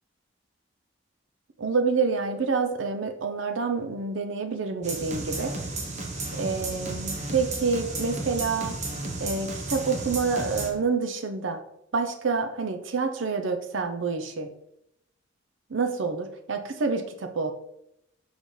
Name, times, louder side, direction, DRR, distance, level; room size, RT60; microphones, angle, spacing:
voice 1, 1.6-5.5 6.4-8.7 9.2-11.6 11.9-14.5 15.7-17.5, right 4 dB, 70° right, 7 dB, 0.6 m, -27 dB
sound 1, 4.8-10.7, right 2 dB, 35° right, 0.8 m, -33 dB
6.4 x 5.1 x 3.2 m, 0.79 s
head